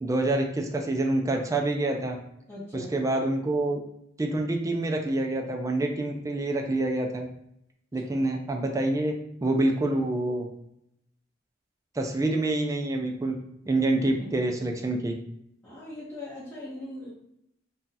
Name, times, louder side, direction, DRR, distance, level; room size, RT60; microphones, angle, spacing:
voice 1, 0.0-2.2 2.7-3.8 4.2-7.3 7.9-9.1 9.4-10.4 12.0-13.4 13.7-15.2, right 2 dB, 15° right, 2 dB, 0.3 m, -26 dB
voice 2, 2.5-2.9 8.1-8.2 14.2-14.5 15.6-17.1, left 1 dB, 10° left, -10 dB, 0.8 m, -40 dB
2.7 x 2.3 x 3.8 m, 0.77 s
head